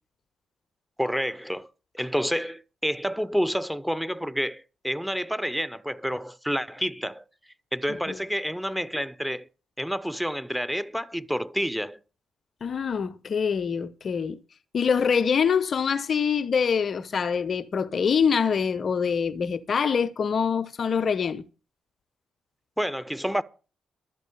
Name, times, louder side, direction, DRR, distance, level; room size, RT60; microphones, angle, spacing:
voice 1, 1.0-1.7 1.9-7.2 7.7-9.5 9.8-12.0 22.8-23.4, equal, ahead, 0.9 m, -29 dB
voice 2, 12.6-14.4 14.7-21.4, left 6 dB, 55° left, 0.8 m, -25 dB
12.0 x 8.2 x 6.7 m
hypercardioid pair, 40°, 0 cm